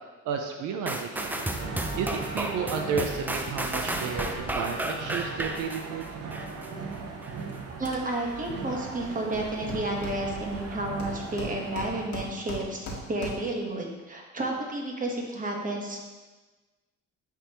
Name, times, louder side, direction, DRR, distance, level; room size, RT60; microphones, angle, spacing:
voice 1, 0.2-1.3 2.0-6.1, right 6 dB, 85° right, 4 dB, 0.6 m, -32 dB
sound 1, 0.9-6.7 7.2-7.3, right 1 dB, 5° right, 0.5 m, -33 dB
sound 2, 1.1-12.1, right 4 dB, 55° right, 0.8 m, -38 dB
voice 2, 7.8-16.0, right 1 dB, 25° right, 0 dB, 1.3 m, -31 dB
Hammer, 9.0-9.1 9.3-10.6 11.0-13.6, equal, 70° left, 1.6 m, -39 dB
10.0 x 3.5 x 3.0 m, 1.2 s
cardioid pair, 90°, 30 cm